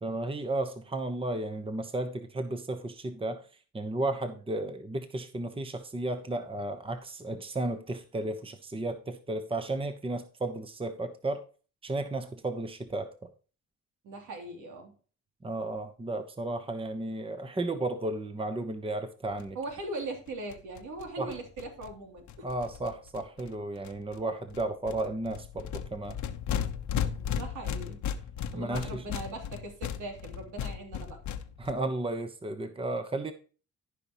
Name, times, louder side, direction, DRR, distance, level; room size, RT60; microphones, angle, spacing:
voice 1, 0.0-3.5 3.7-11.5 11.8-13.1 15.4-19.6 21.2-21.3 22.4-26.2 28.5-29.0 31.6-33.3, right 2 dB, 20° right, 9 dB, 1.1 m, -33 dB
voice 2, 14.0-14.9 19.5-22.5 27.3-28.0 28.5-31.2, right 2 dB, 80° right, 2 dB, 3.1 m, -40 dB
sound 1, 19.4-19.5 19.7-19.8 20.0-20.1 20.3-23.5 23.8-24.2 24.5-31.7, left 9 dB, 70° left, 1.0 m, -36 dB
14.5 x 5.5 x 3.0 m, 0.37 s
cardioid pair, 90°, 30 cm